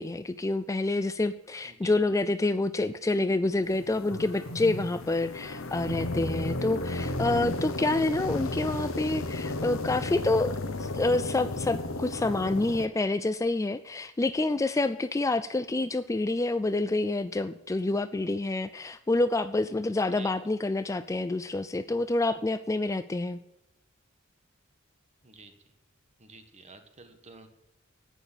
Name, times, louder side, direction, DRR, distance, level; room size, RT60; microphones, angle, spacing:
voice 1, 0.0-23.4, left 2 dB, 15° left, 12 dB, 0.4 m, -28 dB
sound 1, 3.6-12.9, left 2 dB, 70° left, 1.1 m, -33 dB
voice 2, 20.0-20.3 25.2-25.5 26.2-27.5, right 4 dB, 30° right, 8 dB, 1.4 m, -50 dB
11.0 x 9.2 x 7.5 m, 0.89 s
head